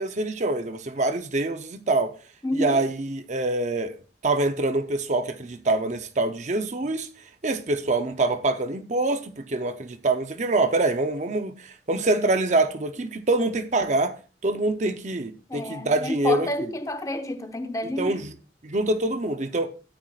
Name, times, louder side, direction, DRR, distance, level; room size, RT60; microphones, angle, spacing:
voice 1, 0.0-2.2 2.5-4.0 4.2-7.1 7.4-14.2 14.4-16.5 18.0-18.4 18.6-19.7, right 2 dB, 40° right, 0.7 m, -25 dB
voice 2, 2.4-2.9 15.5-18.2, left 1 dB, 20° left, 0.8 m, -29 dB
13.0 x 9.1 x 2.4 m
head